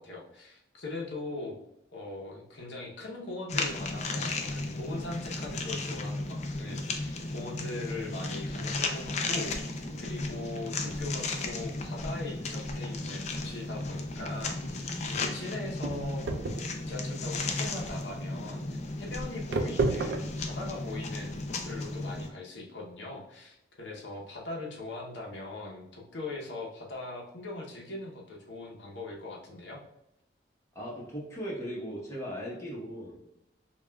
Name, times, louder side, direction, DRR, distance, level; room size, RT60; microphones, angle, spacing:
voice 1, 0.0-1.5 1.9-16.2 16.9-29.8, left 2 dB, 85° left, -1 dB, 0.8 m, -41 dB
sound 1, 3.5-22.3, left 2 dB, 40° left, 0.4 m, -34 dB
sound 2, 10.8-22.2, right 3 dB, 75° right, 0.4 m, -36 dB
voice 2, 30.7-33.2, equal, 15° left, -5 dB, 1.0 m, -38 dB
5.5 x 2.4 x 2.2 m, 0.84 s
head